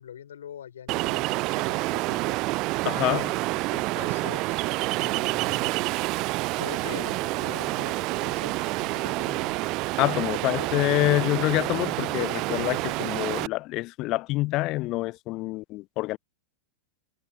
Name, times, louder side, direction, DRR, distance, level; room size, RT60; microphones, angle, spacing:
voice 1, 0.0-2.4 3.0-3.4 3.7-4.6 5.0-5.9 6.6-9.6 10.6-10.7, left 9 dB, 65° left, 7.0 m, -43 dB
Ocean, 0.9-13.5, right 22 dB, 40° right, 0.6 m, -28 dB
voice 2, 2.8-3.3 10.0-16.2, left 20 dB, 40° left, 0.9 m, -26 dB
figure-of-eight pair, 90°, 0 cm